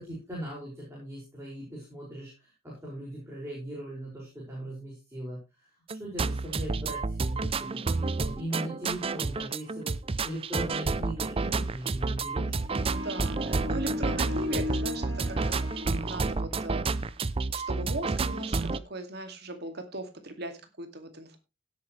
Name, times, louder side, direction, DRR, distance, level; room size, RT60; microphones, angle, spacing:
voice 1, 0.0-5.7 6.0-9.9 10.2-12.6, right 1 dB, 15° right, -4 dB, 5.7 m, -39 dB
Smooth intro, 5.9-18.8, right 3 dB, 30° right, 0.5 m, -30 dB
sound 1, 12.6-16.6, left 2 dB, 85° right, 3.5 m, -36 dB
voice 2, 12.8-17.0 17.5-21.4, right 2 dB, 55° right, 7 dB, 2.3 m, -39 dB
17.0 x 8.5 x 3.2 m, 0.27 s
head